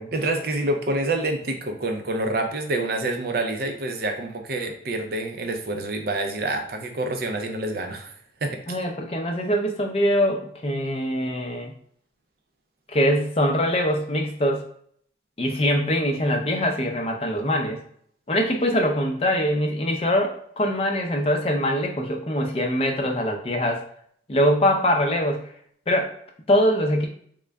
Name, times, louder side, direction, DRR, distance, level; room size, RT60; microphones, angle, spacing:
voice 1, 0.1-8.1 8.4-8.6, right 2 dB, 50° right, 5 dB, 0.5 m, -27 dB
voice 2, 8.7-11.7 12.9-14.7 15.4-17.8 18.3-23.8 24.3-25.4 25.9-26.1 26.5-27.1, equal, 30° left, 2 dB, 0.5 m, -23 dB
3.7 x 2.2 x 3.4 m, 0.65 s
head